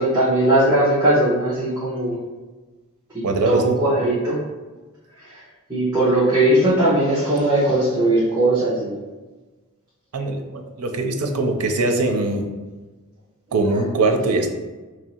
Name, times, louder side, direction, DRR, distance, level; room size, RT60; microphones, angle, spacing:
voice 1, 0.0-2.1 3.4-4.4 5.7-8.9, right 1 dB, 15° right, -12 dB, 1.0 m, -19 dB
voice 2, 3.2-3.8 10.1-12.5 13.5-14.5, right 2 dB, 85° right, 4 dB, 0.5 m, -21 dB
3.0 x 2.7 x 4.2 m, 1.3 s
head